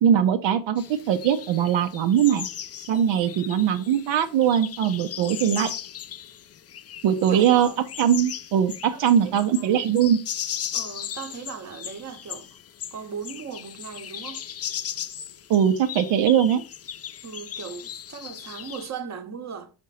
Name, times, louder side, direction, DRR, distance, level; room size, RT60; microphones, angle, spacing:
voice 1, 0.0-2.5 2.9-5.7 7.0-7.7 8.0-10.2 15.5-16.6, right 9 dB, 75° right, 0.8 m, -21 dB
sound 1, 0.8-18.9, left 9 dB, 35° left, 0.4 m, -37 dB
voice 2, 7.3-7.8 8.9-9.7 10.7-12.5 12.9-14.4 17.2-19.7, right 6 dB, 35° right, 1.0 m, -38 dB
5.2 x 5.2 x 4.1 m
cardioid pair, 120°, 45 cm